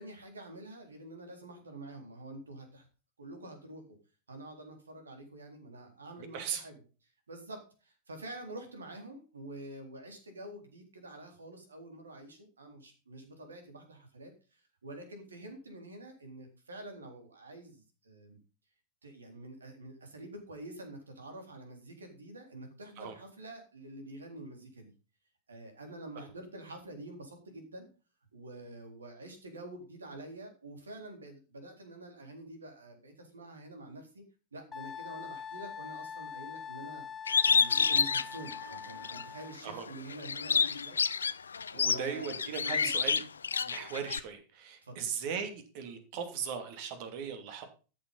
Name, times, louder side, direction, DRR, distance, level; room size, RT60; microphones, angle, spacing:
voice 1, 0.0-2.9 3.2-4.0 4.3-6.8 7.3-18.4 19.0-24.9 25.5-27.9 28.3-34.2 34.5-37.1 37.5-41.0 41.7-42.3 42.6-42.9 44.8-45.1, right 1 dB, 75° right, 5 dB, 3.8 m, -47 dB
Wind instrument woodwind instrument, 34.7-39.6, left 7 dB, 20° left, 0.9 m, -43 dB
Bird, 37.3-39.2 39.7-44.2, left 6 dB, 70° left, 0.5 m, -29 dB
voice 2, 41.7-43.2 43.6-47.6, right 7 dB, 45° right, 7 dB, 2.8 m, -38 dB
13.5 x 7.3 x 5.6 m, 0.35 s
figure-of-eight pair, 90°, 0 cm